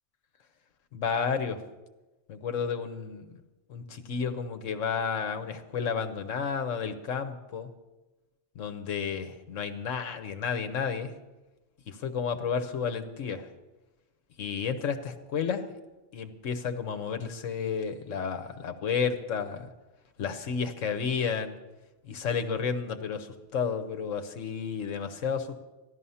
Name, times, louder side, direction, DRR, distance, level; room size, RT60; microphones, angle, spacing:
voice 1, 0.9-1.6 2.3-3.4 3.7-7.7 8.5-11.1 11.9-13.5 14.4-15.7 16.1-19.7 20.2-21.6 22.0-25.6, left 6 dB, 90° left, 8 dB, 1.4 m, -31 dB
14.0 x 12.0 x 5.6 m, 1.1 s
omnidirectional pair, 1.3 m